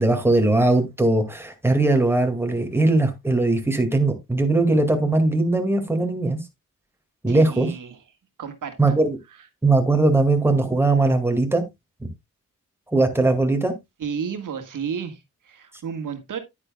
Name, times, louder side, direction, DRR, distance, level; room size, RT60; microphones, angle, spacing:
voice 1, 0.0-6.4 7.2-7.7 8.8-9.2 9.6-11.6 12.0-12.1 12.9-13.7, right 2 dB, 5° right, 2.1 m, -20 dB
voice 2, 7.3-8.0 8.4-8.9 9.3-9.5 14.0-16.4, right 7 dB, 70° right, 1.6 m, -32 dB
9.9 x 9.6 x 2.3 m
wide cardioid pair, 105°, 32 cm